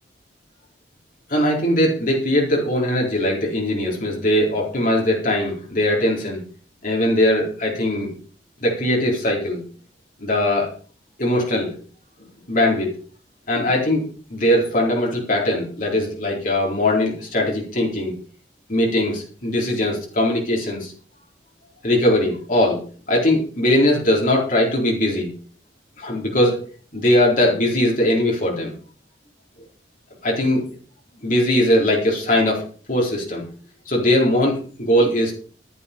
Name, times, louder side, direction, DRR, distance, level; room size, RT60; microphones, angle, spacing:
voice 1, 1.3-6.4 6.8-8.1 8.6-9.6 10.2-10.7 11.2-11.7 12.2-12.9 13.5-14.0 14.3-18.1 18.7-20.9 21.8-25.3 26.0-26.6 26.9-28.7 30.2-30.6 31.2-32.6 32.9-33.4 33.9-35.3, left 1 dB, 50° left, -2 dB, 4.3 m, -20 dB
12.5 x 11.5 x 5.4 m, 0.42 s
head